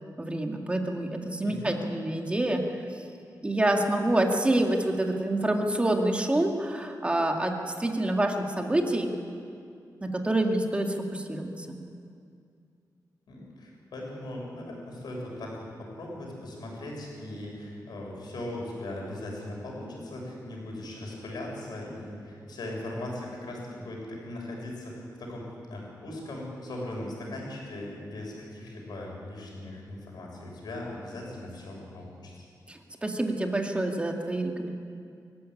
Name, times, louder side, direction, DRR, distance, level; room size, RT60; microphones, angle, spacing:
voice 1, 0.2-3.0 3.4-9.1 10.0-11.8 32.7-34.7, right 1 dB, 15° right, 2 dB, 2.1 m, -27 dB
voice 2, 1.4-2.0 13.3-32.5, left 1 dB, 80° left, -1 dB, 7.1 m, -39 dB
24.0 x 15.0 x 10.0 m, 2.4 s
wide cardioid pair, 145°, 7 cm